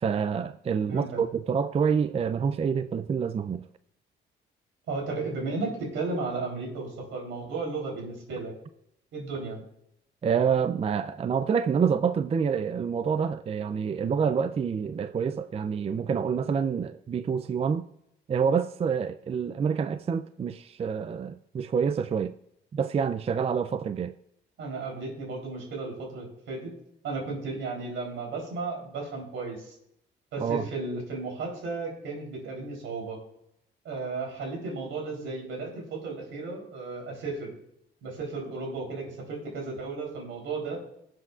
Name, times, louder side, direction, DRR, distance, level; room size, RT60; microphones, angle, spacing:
voice 1, 0.0-3.7 10.2-17.8 18.3-22.3 22.7-24.1 30.4-30.7, right 6 dB, 30° right, 0.4 m, -27 dB
voice 2, 0.9-1.2 4.9-8.5 9.1-9.6 24.6-26.7 27.0-29.8 30.3-33.2 33.8-37.6 38.0-40.8, right 3 dB, 80° right, 3.6 m, -34 dB
18.0 x 7.6 x 2.4 m
cardioid pair, 90°, 20 cm